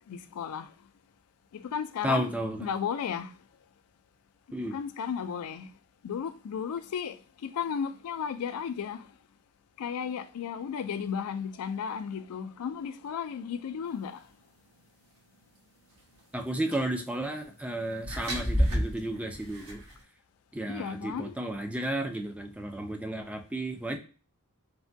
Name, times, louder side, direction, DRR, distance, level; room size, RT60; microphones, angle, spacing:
voice 1, 0.1-0.7 1.5-2.3 2.6-3.3 4.6-5.7 6.0-7.2 7.4-9.1 9.8-14.2 20.7-21.3, left 7 dB, 70° left, 0.3 m, -34 dB
voice 2, 2.0-2.7 4.5-4.8 16.3-19.8 20.5-24.0, right 1 dB, 5° right, 0.3 m, -33 dB
sound 1, 16.7-16.9 18.0-20.0, equal, 75° right, 1.2 m, -29 dB
3.3 x 2.2 x 2.6 m
head